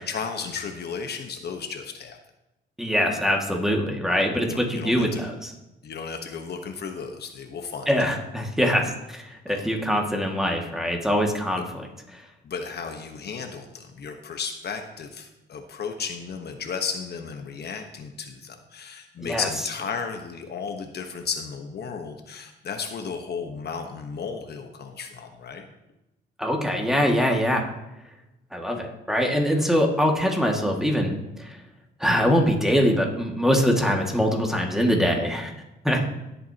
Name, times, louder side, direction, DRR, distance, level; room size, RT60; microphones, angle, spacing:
voice 1, 0.1-2.2 4.5-5.2 5.8-7.9 9.5-9.7 12.4-25.7, left 5 dB, 55° left, 4 dB, 1.2 m, -34 dB
voice 2, 2.8-5.5 7.9-11.9 19.2-19.5 26.4-27.7 28.5-31.1 32.0-35.5 35.8-36.0, equal, ahead, 1 dB, 2.0 m, -23 dB
17.0 x 8.3 x 2.9 m, 0.95 s
cardioid pair, 90°, 20 cm